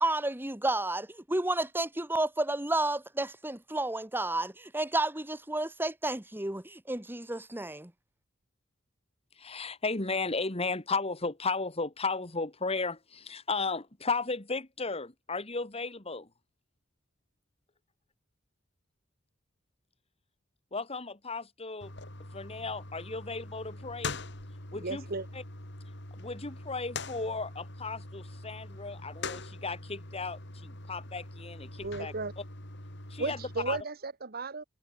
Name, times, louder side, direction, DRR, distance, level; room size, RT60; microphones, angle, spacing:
voice 1, 0.0-7.9, right 2 dB, 10° right, 1.6 m, -31 dB
voice 2, 9.4-16.3 20.7-21.9 22.3-24.2 24.7-25.0 25.3-25.4 26.2-32.1 33.1-33.4 33.7-33.8, left 3 dB, 30° left, 2.2 m, -35 dB
sound 1, 21.8-33.8, left 3 dB, 60° left, 5.1 m, -43 dB
voice 3, 24.7-25.3 31.8-32.3 33.2-34.6, right 3 dB, 50° right, 1.4 m, -35 dB
head